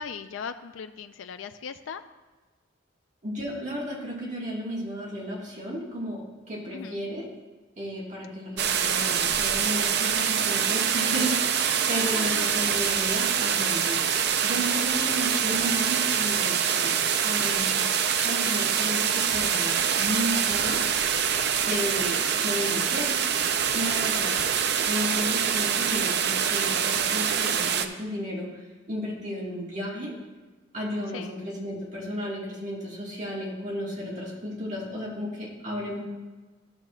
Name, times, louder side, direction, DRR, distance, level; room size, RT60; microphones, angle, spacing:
voice 1, 0.0-2.0 6.7-7.0 12.1-12.6 15.1-15.2 21.7-21.9 31.1-31.3, left 6 dB, 85° left, 10 dB, 0.4 m, -38 dB
voice 2, 3.2-7.3 7.8-14.1 14.4-20.9 21.6-24.4 24.8-28.5 28.9-30.1 30.7-36.0, equal, 40° right, -4 dB, 1.8 m, -33 dB
sound 1, 8.6-27.9, right 8 dB, 60° right, 0.5 m, -25 dB
13.0 x 6.7 x 2.4 m, 1.3 s
head